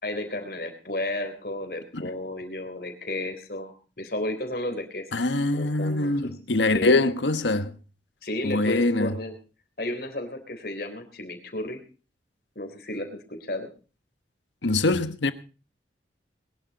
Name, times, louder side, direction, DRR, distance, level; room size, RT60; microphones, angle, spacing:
voice 1, 0.0-5.0 5.5-6.3 6.7-7.0 8.2-9.3 9.8-11.8 12.5-13.7, left 1 dB, 55° left, 3.5 m, -33 dB
voice 2, 5.1-7.7 8.4-9.1 14.6-15.3, left 2 dB, 85° left, 1.3 m, -23 dB
21.5 x 11.5 x 4.1 m
head